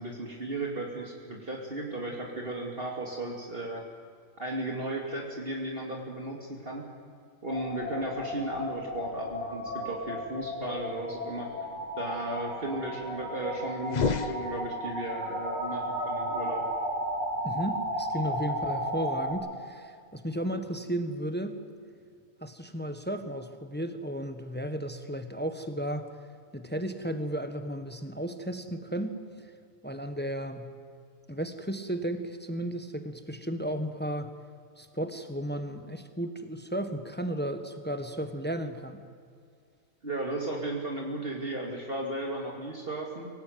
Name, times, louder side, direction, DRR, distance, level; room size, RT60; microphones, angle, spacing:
voice 1, 0.0-3.8 4.4-6.9 7.4-11.5 12.0-16.7 40.0-43.3, right 1 dB, 45° right, -1 dB, 2.9 m, -35 dB
sound 1, 7.5-19.3, equal, 75° right, 5.2 m, -34 dB
sound 2, 13.8-15.1, left 5 dB, 40° left, 0.7 m, -31 dB
voice 2, 17.4-21.6 22.4-26.1 26.5-29.5 29.8-30.7 31.3-34.3 34.8-39.0, right 1 dB, 10° left, 8 dB, 1.3 m, -34 dB
25.0 x 18.0 x 9.4 m, 2.2 s
omnidirectional pair, 1.4 m